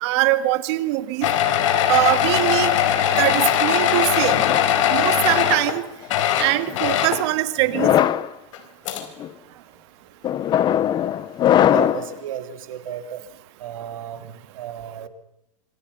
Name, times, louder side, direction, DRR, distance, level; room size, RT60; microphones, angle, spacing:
voice 1, 0.0-1.3 1.9-2.7 3.2-4.4 4.9-5.8 6.4-7.9, right 17 dB, 55° right, 12 dB, 2.0 m, -22 dB
sound 1, 1.2-5.8 6.0-7.3 8.5-8.6 8.9-9.0, left 10 dB, 70° left, 4.6 m, -20 dB
sound 2, 4.2-5.6 6.4-6.8 7.6-8.3 9.0-9.3 10.2-12.1, left 11 dB, 25° left, 0.8 m, -21 dB
voice 2, 11.7-13.2 13.6-15.1, right 9 dB, 80° right, 8 dB, 3.4 m, -33 dB
26.5 x 26.0 x 5.7 m, 0.85 s
supercardioid pair, 140°, 17 cm